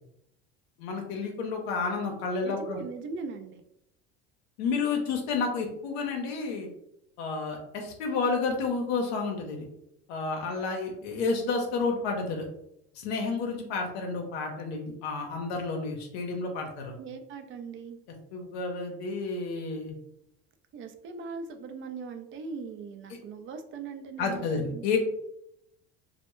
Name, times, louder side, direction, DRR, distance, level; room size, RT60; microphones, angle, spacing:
voice 1, 0.8-2.8 4.6-6.7 7.2-9.7 10.1-12.5 12.9-16.9 18.3-19.9 24.2-25.0, left 4 dB, 80° left, 2 dB, 0.6 m, -30 dB
voice 2, 2.4-3.6 17.0-18.0 20.7-25.0, right 4 dB, 40° right, 7 dB, 0.4 m, -40 dB
2.1 x 2.1 x 3.0 m, 0.79 s
supercardioid pair, 90°, 32 cm